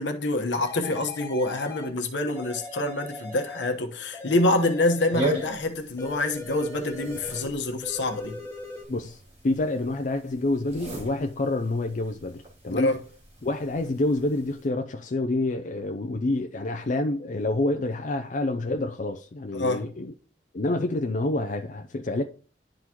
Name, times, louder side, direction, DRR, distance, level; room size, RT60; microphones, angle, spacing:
voice 1, 0.0-8.4 12.7-13.0 19.5-19.8, left 2 dB, 75° left, 1.1 m, -26 dB
sound 1, 0.6-2.0 2.3-3.8 4.1-5.7 6.0-7.5 7.8-8.8, left 3 dB, 15° left, 1.5 m, -40 dB
sound 2, 5.1-14.7, equal, 35° right, 2.6 m, -38 dB
voice 2, 8.9-13.0 13.4-20.1 20.5-22.2, left 2 dB, 45° left, 0.5 m, -28 dB
11.0 x 3.9 x 2.9 m
head